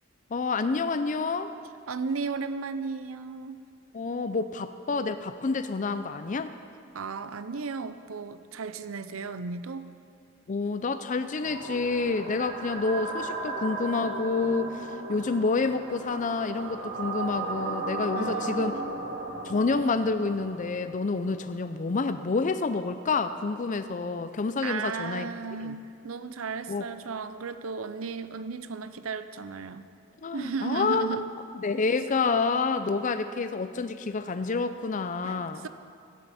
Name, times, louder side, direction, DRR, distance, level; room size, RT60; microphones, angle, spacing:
voice 1, 0.3-1.5 3.9-6.5 10.5-18.7 19.4-25.3 25.6-25.8 26.7-26.9 30.2-31.2 31.5-35.7, left 4 dB, 40° left, 10 dB, 0.5 m, -28 dB
voice 2, 1.9-3.6 6.9-9.9 18.1-18.8 24.6-29.9 30.3-31.3 35.2-35.7, right 4 dB, 90° right, 12 dB, 0.6 m, -35 dB
sound 1, 11.4-21.5, right 2 dB, 55° right, 3.5 m, -36 dB
17.0 x 13.5 x 4.2 m, 2.4 s
head